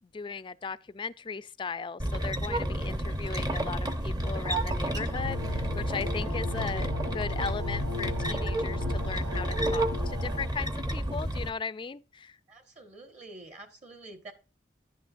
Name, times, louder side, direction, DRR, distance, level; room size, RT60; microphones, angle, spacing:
voice 1, 0.0-12.4, left 5 dB, 25° left, 0.4 m, -37 dB
sound 1, 2.0-11.5, right 1 dB, 20° right, 0.8 m, -31 dB
sound 2, 5.1-10.5, left 3 dB, 90° right, 1.9 m, -38 dB
voice 2, 12.5-14.3, right 2 dB, 40° right, 1.5 m, -47 dB
11.0 x 9.2 x 2.5 m
head